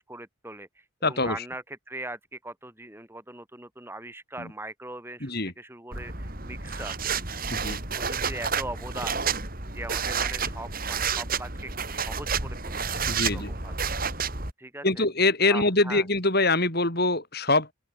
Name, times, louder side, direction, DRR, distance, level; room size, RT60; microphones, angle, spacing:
voice 1, 0.0-6.9 7.9-9.3 9.7-14.2 14.6-15.1 15.5-16.1, right 2 dB, 10° right, 7.1 m, -40 dB
voice 2, 1.0-1.4 5.2-5.5 7.5-7.8 13.1-13.5 14.8-17.7, left 2 dB, 45° left, 6.2 m, -24 dB
sound 1, 5.9-14.5, right 5 dB, 40° right, 5.4 m, -30 dB
open air
head